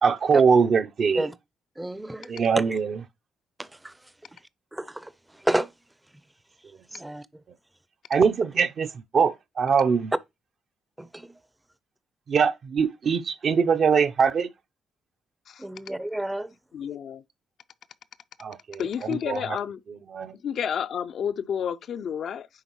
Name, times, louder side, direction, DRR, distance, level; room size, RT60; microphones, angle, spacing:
voice 1, 0.0-1.3 2.3-3.0 8.1-8.9 9.1-10.1 12.3-14.5 18.4-19.4 20.1-20.3, right 6 dB, 55° right, 0.6 m, -22 dB
voice 2, 1.8-2.8 3.6-3.9 4.7-5.1 5.4-5.7 6.9-7.2 11.0-11.3 15.6-16.5, right 1 dB, 10° right, 0.5 m, -30 dB
voice 3, 16.7-17.2 18.8-19.8 20.4-22.5, left 8 dB, 65° left, 0.4 m, -30 dB
9.5 x 3.5 x 3.0 m
cardioid pair, 90°, 0 cm